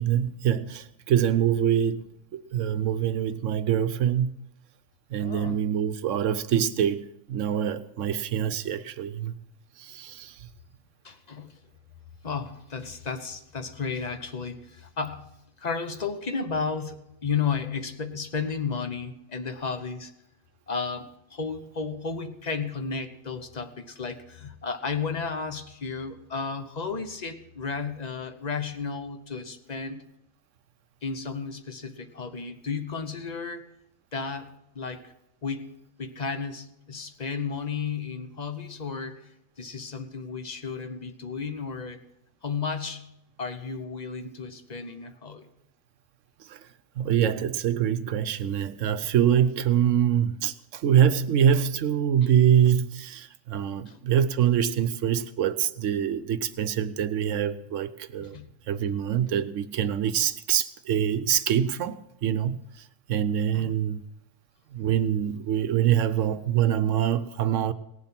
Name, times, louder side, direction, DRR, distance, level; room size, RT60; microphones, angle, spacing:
voice 1, 0.0-2.0 2.3-4.3 5.1-9.3 9.8-10.4 46.4-46.7 47.0-58.4 58.7-64.0 64.7-67.7, right 9 dB, 75° right, 1.0 m, -25 dB
voice 2, 5.2-5.6 11.0-11.5 12.2-15.3 15.6-20.1 20.7-30.0 31.0-33.7 34.1-35.1 35.4-39.3 39.6-42.0 42.4-43.1 43.4-45.5 53.9-54.0 58.2-58.5 63.5-63.7, left 5 dB, 35° left, 0.9 m, -33 dB
18.0 x 7.4 x 5.8 m
omnidirectional pair, 1.4 m